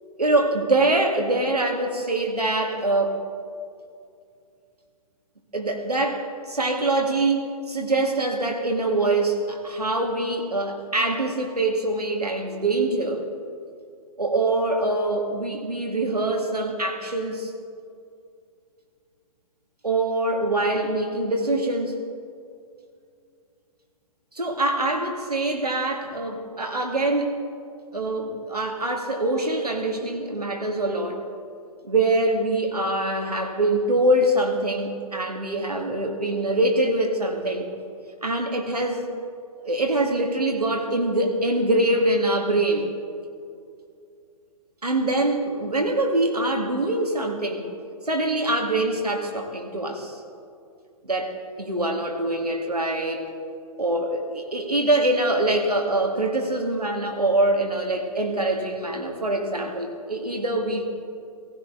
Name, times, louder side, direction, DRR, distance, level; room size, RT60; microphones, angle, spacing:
voice 1, 0.2-3.2 5.5-13.2 14.2-17.5 19.8-22.0 24.3-27.4 27.9-31.2 31.8-37.7 38.2-39.1 39.6-42.9 44.8-47.7 48.1-50.2 51.0-53.2 53.8-60.9, right 2 dB, 80° right, 2 dB, 2.1 m, -24 dB
17.5 x 15.5 x 3.8 m, 2.4 s
figure-of-eight pair, 120°, 20 cm